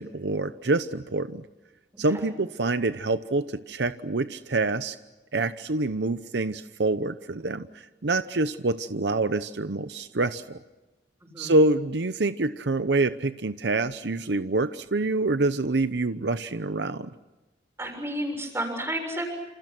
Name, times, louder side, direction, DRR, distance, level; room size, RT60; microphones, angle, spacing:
voice 1, 0.0-1.4 2.0-5.0 5.3-7.7 8.0-10.6 11.4-17.1, right 2 dB, 75° right, 12 dB, 0.8 m, -26 dB
voice 2, 11.2-11.6 17.8-19.3, right 1 dB, 15° right, 3 dB, 6.8 m, -31 dB
28.0 x 28.0 x 6.1 m, 1.1 s
head